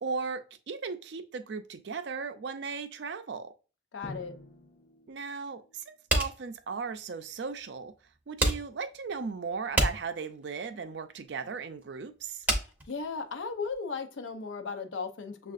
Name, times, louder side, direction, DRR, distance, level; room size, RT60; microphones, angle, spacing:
voice 1, 0.0-3.5 5.1-7.9 8.3-12.4, right 5 dB, 65° right, 0.4 m, -37 dB
voice 2, 3.9-4.3 12.9-15.5, left 5 dB, 85° left, 0.6 m, -36 dB
Drum, 4.0-6.0, left 2 dB, 40° left, 0.5 m, -48 dB
sound 1, 6.1-13.7, right 1 dB, 10° right, 0.6 m, -31 dB
6.3 x 2.4 x 2.4 m
head